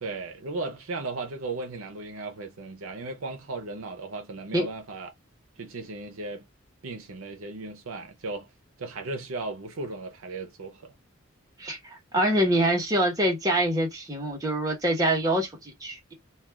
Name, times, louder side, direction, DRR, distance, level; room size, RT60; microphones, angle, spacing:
voice 1, 0.0-5.1 5.6-6.5 6.8-8.5 8.8-10.9, right 3 dB, 75° right, 0.6 m, -36 dB
voice 2, 11.6-16.1, right 1 dB, 15° right, 1.0 m, -25 dB
2.4 x 2.3 x 3.3 m
head